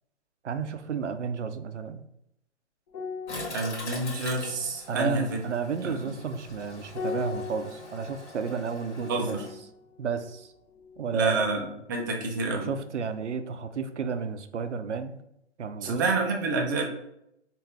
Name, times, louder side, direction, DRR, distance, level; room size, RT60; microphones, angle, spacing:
voice 1, 0.4-2.0 4.9-9.4 10.0-10.5 11.0-11.4 12.5-15.2 15.6-16.1, right 6 dB, 80° right, 9 dB, 0.5 m, -32 dB
sound 1, 2.9-11.6 11.9-12.1, left 5 dB, 30° left, 0.7 m, -41 dB
Toilet flush, 3.3-9.5, left 2 dB, 65° left, 1.5 m, -42 dB
voice 2, 3.5-5.4 5.8-6.1 9.1-9.5 11.1-12.7 15.8-16.8, right 3 dB, 20° right, 1 dB, 0.4 m, -28 dB
4.8 x 2.5 x 3.3 m, 0.80 s
figure-of-eight pair, 120°, 35 cm